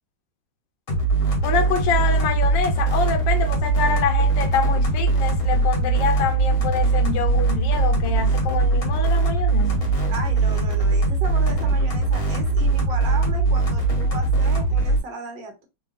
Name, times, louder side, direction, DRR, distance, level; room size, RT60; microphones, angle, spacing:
sound 1, 0.9-15.0, right 3 dB, 55° left, 1.0 m, -21 dB
voice 1, 1.4-9.8, left 6 dB, 75° left, 1.2 m, -26 dB
voice 2, 10.1-15.7, right 3 dB, 70° right, 1.5 m, -35 dB
3.3 x 2.2 x 2.4 m
omnidirectional pair, 2.2 m